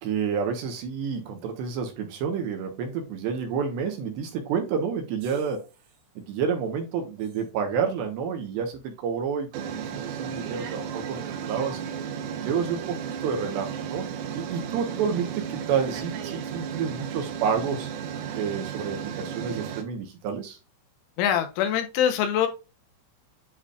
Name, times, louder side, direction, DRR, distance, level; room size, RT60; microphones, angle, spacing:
voice 1, 0.0-5.6 6.2-11.9 12.4-14.1 14.3-17.9 18.3-20.6, right 6 dB, 70° right, 3.2 m, -29 dB
sound 1, 5.2-5.7 7.3-7.4 9.5-19.8, right 8 dB, 85° right, 3.9 m, -34 dB
voice 2, 21.2-22.5, left 9 dB, 80° left, 3.3 m, -23 dB
10.0 x 4.8 x 2.5 m
omnidirectional pair, 5.7 m